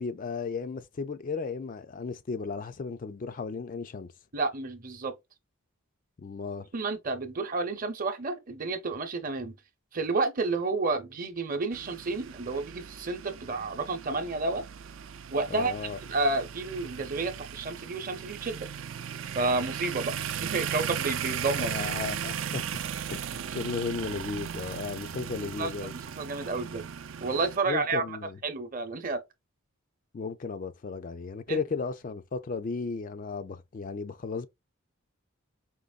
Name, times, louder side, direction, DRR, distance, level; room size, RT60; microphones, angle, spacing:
voice 1, 0.0-4.1 6.2-6.7 15.5-16.0 21.6-22.8 23.1-25.9 27.7-28.4 30.1-34.5, left 4 dB, 35° left, 0.4 m, -35 dB
voice 2, 4.3-5.2 6.7-9.6 9.9-14.6 15.3-18.7 19.3-22.0 25.4-26.9 27.2-28.2 28.4-29.2 31.5-31.6, right 3 dB, 40° right, 0.8 m, -31 dB
sound 1, 11.7-27.6, right 8 dB, 60° right, 0.4 m, -37 dB
5.2 x 2.9 x 2.4 m
head